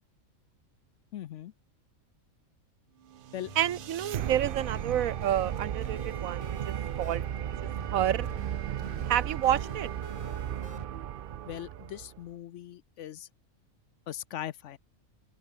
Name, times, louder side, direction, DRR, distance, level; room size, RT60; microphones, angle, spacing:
voice 1, 1.1-1.5 3.3-3.5 11.5-13.3 14.1-14.8, left 11 dB, 65° left, 0.9 m, -40 dB
sound 1, 3.1-12.3, right 10 dB, 60° right, 0.6 m, -35 dB
sound 2, 3.5-10.8, left 2 dB, 20° left, 2.5 m, -49 dB
voice 2, 3.6-7.2 7.6-8.3 9.1-9.9, right 11 dB, 80° right, 1.2 m, -29 dB
open air
omnidirectional pair, 1.5 m